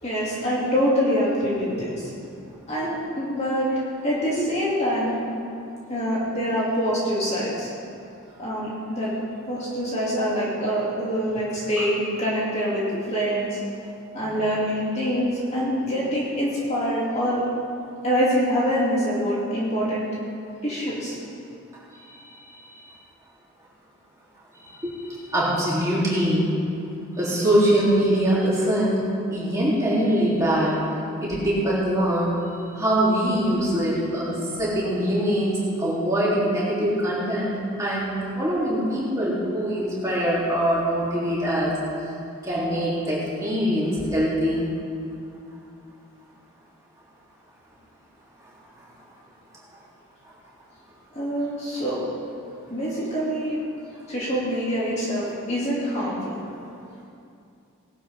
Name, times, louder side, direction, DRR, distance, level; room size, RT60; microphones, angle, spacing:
voice 1, 0.0-2.1 2.7-5.2 5.9-7.7 8.4-9.1 9.5-13.6 14.1-17.4 18.0-20.1 20.6-21.2 51.1-52.0 52.7-53.6 54.1-56.4, equal, 30° left, -7 dB, 2.9 m, -25 dB
voice 2, 24.6-26.5 27.2-29.0 29.3-30.8 31.2-32.3 32.8-41.7 42.4-44.7, equal, 15° right, -9 dB, 3.5 m, -23 dB
18.5 x 12.0 x 3.8 m, 2.6 s
head